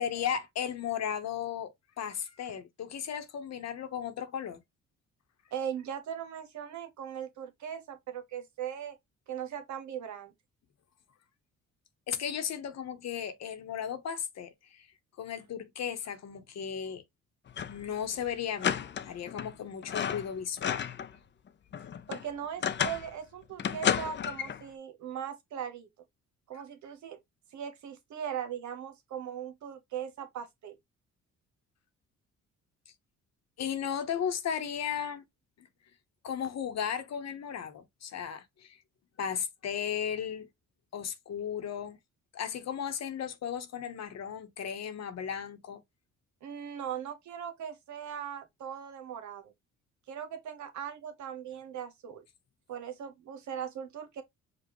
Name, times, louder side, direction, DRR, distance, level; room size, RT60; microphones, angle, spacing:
voice 1, 0.0-4.6 12.1-14.9 15.2-17.0 17.6-21.0 33.6-35.2 35.6-35.7 36.2-38.8 39.2-40.5 40.9-42.0 42.3-45.8, left 8 dB, 60° left, 1.0 m, -35 dB
voice 2, 5.5-9.0 9.3-10.3 22.1-25.9 26.5-27.2 27.5-30.8 46.4-49.5 50.1-52.2 52.7-54.2, right 9 dB, 70° right, 1.1 m, -39 dB
sound 1, 17.5-17.9 18.1-18.2 18.6-19.5 19.8-21.1 21.5-23.1 23.6-24.6, left 8 dB, 40° left, 0.5 m, -32 dB
5.2 x 2.4 x 3.0 m
cardioid pair, 90°, 30 cm